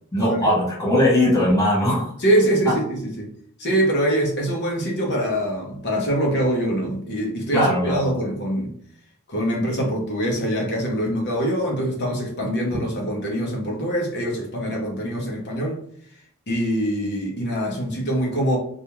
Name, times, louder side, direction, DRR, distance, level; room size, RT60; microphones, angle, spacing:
voice 1, 0.1-2.1 2.7-2.8 7.5-8.1, left 1 dB, 15° left, 0.8 m, -19 dB
voice 2, 2.2-3.3 3.6-8.7 9.3-15.8 16.5-18.6, right 1 dB, 55° left, 0.8 m, -24 dB
2.5 x 2.2 x 2.9 m
head